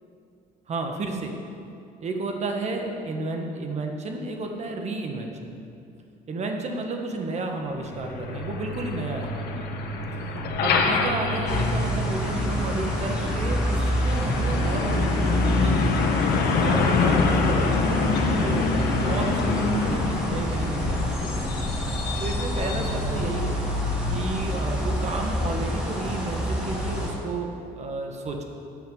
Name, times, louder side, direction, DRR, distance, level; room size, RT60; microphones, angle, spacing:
voice 1, 0.7-1.4 2.0-5.6 6.3-9.8 10.6-15.9 16.6-23.6 24.1-28.4, right 3 dB, 40° right, 3 dB, 1.4 m, -32 dB
Truck, 7.7-25.4, left 4 dB, 70° left, 1.2 m, -27 dB
sound 1, 9.2-9.4 10.3-10.4 11.5-11.6 12.6-12.7 13.8-14.0 14.9-15.1, right 5 dB, 65° right, 1.4 m, -47 dB
sound 2, 11.5-27.1, equal, 5° right, 2.8 m, -27 dB
10.5 x 5.8 x 7.9 m, 2.6 s
cardioid pair, 110°, 17 cm